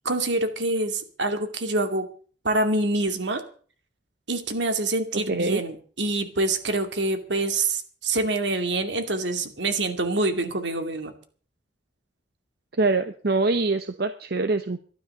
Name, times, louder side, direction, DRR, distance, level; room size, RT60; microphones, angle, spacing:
voice 1, 0.0-2.1 2.4-3.4 4.3-11.1, right 2 dB, 80° right, 6 dB, 2.4 m, -26 dB
voice 2, 5.3-5.6 12.8-14.8, right 3 dB, 60° right, 9 dB, 0.9 m, -24 dB
13.0 x 12.0 x 6.6 m, 0.43 s
head